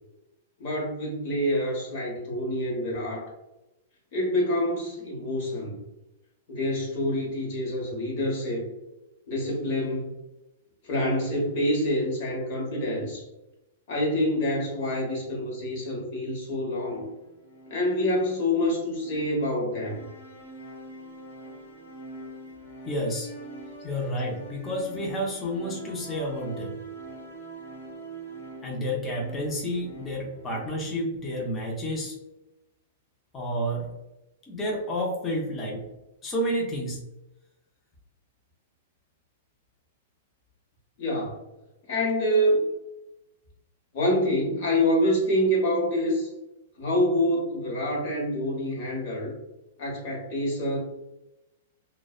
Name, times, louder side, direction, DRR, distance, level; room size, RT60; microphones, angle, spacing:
voice 1, 0.6-3.3 4.1-5.8 6.5-8.7 9.3-10.1 10.8-13.2 13.9-17.0 17.7-20.0 41.0-41.3 41.9-42.6 43.9-46.3 46.8-49.3 49.8-50.8, left 1 dB, 45° left, -3 dB, 0.9 m, -26 dB
sound 1, 16.7-30.6, right 2 dB, 80° left, 0.9 m, -44 dB
voice 2, 22.9-23.3 23.8-26.7 28.6-32.2 33.3-33.9 34.5-35.8 36.2-37.0, equal, 15° left, -2 dB, 0.5 m, -30 dB
2.6 x 2.1 x 2.3 m, 0.94 s
supercardioid pair, 170°, 0 cm